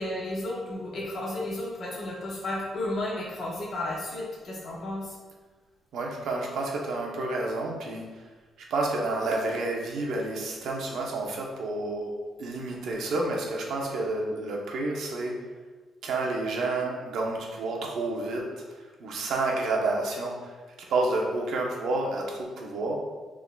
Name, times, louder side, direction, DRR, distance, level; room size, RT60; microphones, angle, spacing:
voice 1, 0.0-5.2, left 1 dB, 45° left, -4 dB, 1.2 m, -33 dB
voice 2, 5.9-8.1 8.7-15.4 16.0-18.6 19.0-20.5 20.9-23.0, right 2 dB, 70° right, 0 dB, 0.8 m, -30 dB
5.9 x 3.6 x 2.3 m, 1.3 s
cardioid pair, 170°, 0 cm